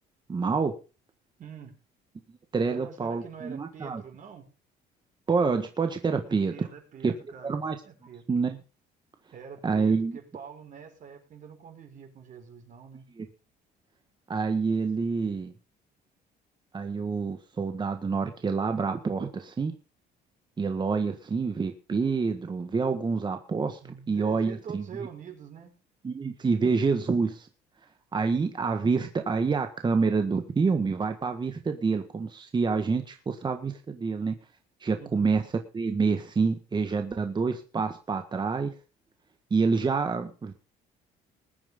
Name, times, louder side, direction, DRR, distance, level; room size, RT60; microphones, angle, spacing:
voice 1, 0.3-0.7 2.5-4.0 5.3-6.7 7.0-7.1 7.4-7.8 8.3-8.6 9.6-10.2 13.2-13.3 14.3-15.5 16.7-19.7 20.6-23.8 24.1-24.8 26.0-27.5 28.1-34.4 34.8-38.7 39.5-40.5, right 4 dB, 25° right, 6 dB, 1.6 m, -27 dB
voice 2, 1.4-1.8 2.7-4.5 6.2-7.6 7.8-8.3 9.3-13.1 23.8-25.7 35.0-35.4, right 7 dB, 50° right, 3 dB, 5.3 m, -45 dB
21.0 x 9.2 x 3.8 m, 0.33 s
cardioid pair, 110°, 17 cm